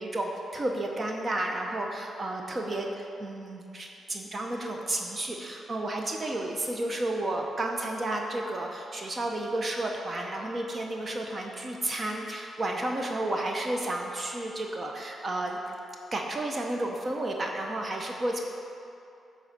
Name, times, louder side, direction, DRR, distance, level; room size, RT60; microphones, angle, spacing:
voice 1, 0.0-15.7 16.1-18.4, right 1 dB, 35° right, 1 dB, 0.7 m, -32 dB
8.5 x 4.0 x 6.6 m, 2.7 s
cardioid pair, 115°, 0 cm